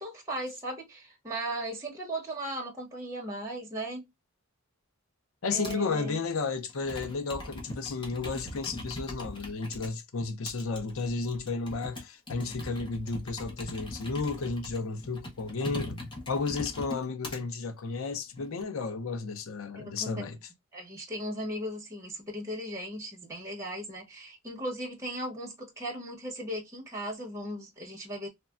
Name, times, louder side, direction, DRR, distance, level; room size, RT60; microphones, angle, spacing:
voice 1, 0.0-4.0 5.5-6.2 19.8-20.3 20.7-28.3, right 1 dB, 15° right, 1.0 m, -37 dB
voice 2, 5.4-20.4, left 4 dB, 65° left, 0.6 m, -33 dB
Computer keyboard, 5.6-5.9 6.7-9.9 10.5-17.4 18.1-18.6, left 1 dB, 20° left, 0.9 m, -41 dB
3.2 x 2.2 x 2.3 m
head